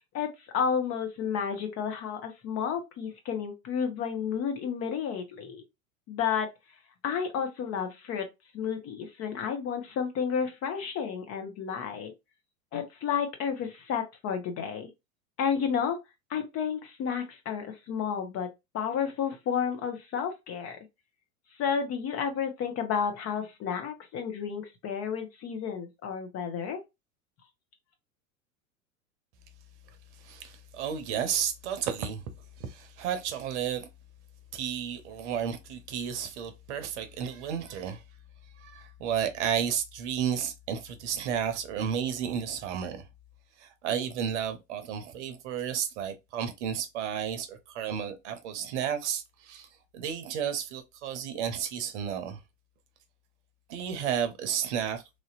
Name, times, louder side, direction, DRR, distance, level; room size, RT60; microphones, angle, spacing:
voice 1, 0.5-5.6 6.1-6.5 7.0-8.3 8.5-12.1 12.7-14.9 15.4-16.0 16.3-18.5 18.7-20.8 21.6-26.8, left 7 dB, 35° left, 1.0 m, -31 dB
voice 2, 30.2-32.2 32.6-33.9 34.5-38.0 38.6-43.1 43.6-49.7 49.9-52.4 53.7-55.2, right 8 dB, 55° right, 0.8 m, -32 dB
3.2 x 2.7 x 2.5 m
figure-of-eight pair, 90°, 42 cm